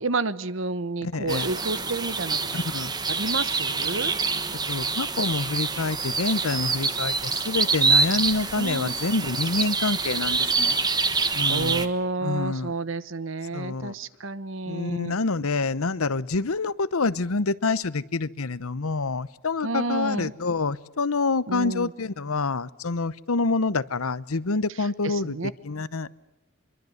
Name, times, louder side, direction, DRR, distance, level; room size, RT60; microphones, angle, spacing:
voice 1, 0.0-2.5 3.1-4.2 8.5-8.9 11.2-15.1 19.6-20.3 21.5-21.9 25.0-25.5, right 3 dB, 65° right, 1.1 m, -30 dB
voice 2, 1.0-1.5 2.5-2.9 4.7-10.8 11.3-11.9 12.2-12.7 13.5-13.9 14.7-26.3, left 3 dB, 85° left, 0.9 m, -27 dB
sound 1, 1.3-11.9, right 4 dB, 20° right, 1.3 m, -26 dB
25.0 x 23.0 x 7.9 m
head